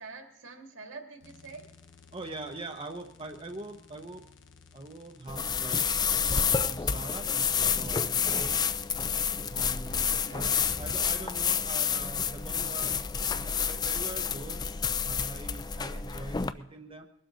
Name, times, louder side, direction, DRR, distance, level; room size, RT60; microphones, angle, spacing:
voice 1, 0.0-1.7 10.1-10.6, right 3 dB, 80° right, 3 dB, 2.3 m, -45 dB
sound 1, 1.2-11.8, left 4 dB, 70° left, 1.0 m, -56 dB
voice 2, 2.1-4.3 4.7-8.7 9.5-14.6 15.0-17.1, right 2 dB, 25° right, 4 dB, 0.8 m, -43 dB
sound 2, 5.3-16.5, left 6 dB, 20° left, 0.4 m, -29 dB
22.0 x 12.0 x 3.9 m, 0.87 s
head